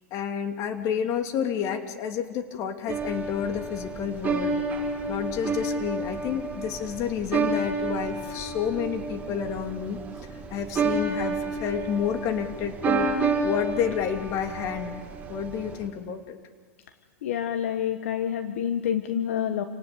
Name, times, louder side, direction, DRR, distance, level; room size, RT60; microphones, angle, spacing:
voice 1, 0.1-4.6 5.1-10.0 10.5-13.1 13.4-15.0 15.3-16.4, left 8 dB, 45° left, 6 dB, 2.8 m, -30 dB
sound 1, 2.9-15.9, right 3 dB, 20° right, 6.5 m, -30 dB
voice 2, 17.2-19.6, left 9 dB, 75° left, 9 dB, 1.4 m, -28 dB
29.0 x 18.5 x 8.3 m, 1.5 s
hypercardioid pair, 115°, 7 cm